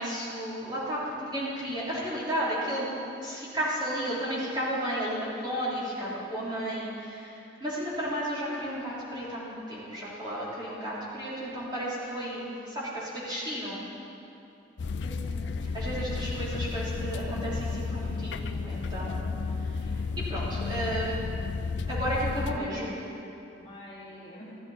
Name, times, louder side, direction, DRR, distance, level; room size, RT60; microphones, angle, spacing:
voice 1, 0.0-2.9 3.2-13.8 15.7-19.3 19.6-21.2 21.9-22.9, equal, 25° right, -8 dB, 3.4 m, -33 dB
sound 1, 14.8-22.6, left 4 dB, 70° left, 0.5 m, -32 dB
voice 2, 15.0-15.4 22.5-23.2 23.5-24.6, equal, 35° left, -7 dB, 2.5 m, -45 dB
14.5 x 14.0 x 4.3 m, 2.7 s
head